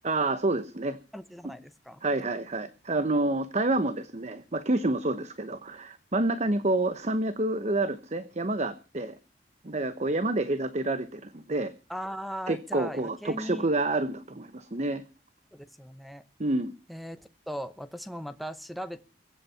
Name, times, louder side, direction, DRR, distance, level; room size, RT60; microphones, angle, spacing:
voice 1, 0.0-1.0 2.0-9.2 9.6-11.7 12.5-15.0 16.4-16.7, right 2 dB, 40° right, 12 dB, 0.9 m, -28 dB
voice 2, 1.1-2.0 11.9-13.6 15.5-16.2 16.9-19.0, equal, ahead, 9 dB, 0.8 m, -38 dB
23.0 x 8.6 x 5.7 m, 0.34 s
head